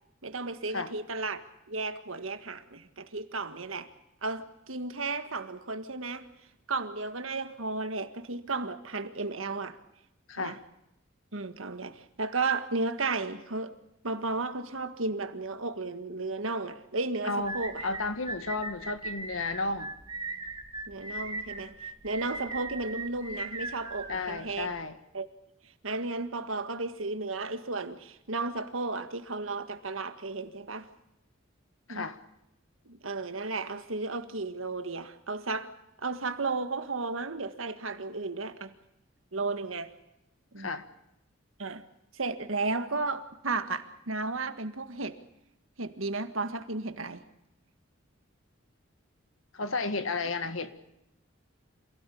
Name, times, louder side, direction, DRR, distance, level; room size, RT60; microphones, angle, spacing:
voice 1, 0.2-1.4 1.7-3.9 4.2-6.3 6.7-9.8 10.4-10.6 11.3-13.7 14.0-17.8 20.9-24.7 25.1-25.3 25.6-30.9 31.9-32.1 32.9-35.7 36.0-38.8 39.3-39.9 40.5-40.7 41.6-41.8 42.1-45.2 45.8-47.2, right 3 dB, 85° right, 1.8 m, -34 dB
voice 2, 17.2-17.6 17.8-19.9 24.1-25.0 31.9-32.2 40.6-40.9 49.5-50.7, left 3 dB, 90° left, 1.8 m, -32 dB
sound 1, 17.4-24.8, right 3 dB, 20° right, 2.2 m, -39 dB
27.0 x 17.0 x 8.5 m
head